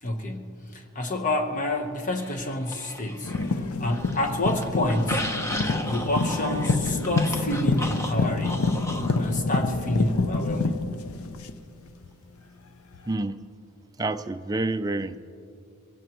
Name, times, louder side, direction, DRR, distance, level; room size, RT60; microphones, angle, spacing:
voice 1, 0.0-5.3 5.9-8.7 9.2-11.0, left 1 dB, 35° left, 3 dB, 1.1 m, -29 dB
sound 1, 2.2-3.5 3.9-9.2, left 1 dB, 10° left, 0.8 m, -34 dB
sound 2, 3.2-12.1 12.9-13.0, left 3 dB, 75° left, 0.6 m, -27 dB
voice 2, 13.1-13.4 14.0-15.2, right 2 dB, 15° right, 8 dB, 0.4 m, -28 dB
22.5 x 16.5 x 3.1 m, 2.6 s
head